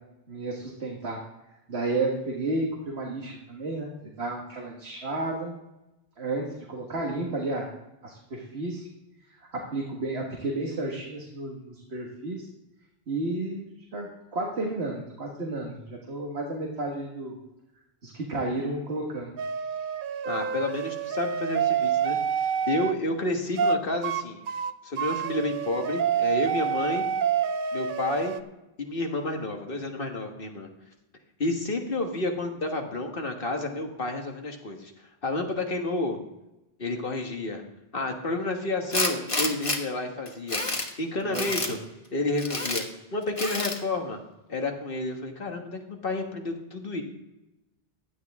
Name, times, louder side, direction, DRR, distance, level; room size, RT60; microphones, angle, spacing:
voice 1, 0.3-1.2 1.7-5.6 6.2-7.7 8.0-8.9 9.5-12.5 13.1-17.3 18.0-19.3 41.2-41.5, right 2 dB, 90° right, -1 dB, 1.9 m, -32 dB
sound 1, 19.4-22.9 23.6-23.8 24.0-24.2 24.5-28.4, right 7 dB, 60° right, 0.7 m, -27 dB
voice 2, 20.2-22.2 22.7-24.4 24.8-27.0 27.7-28.4 28.8-30.7 31.4-34.9 35.2-36.2 36.8-37.6 37.9-40.6 41.0-41.8 42.1-42.8 43.1-44.2 44.5-47.0, left 2 dB, 60° left, 3 dB, 1.7 m, -30 dB
Tools, 38.9-39.8 40.3-40.9 41.3-41.7 42.4-42.8 43.4-43.8, left 2 dB, 30° left, 1.3 m, -28 dB
15.5 x 10.0 x 3.6 m, 0.95 s
omnidirectional pair, 1.0 m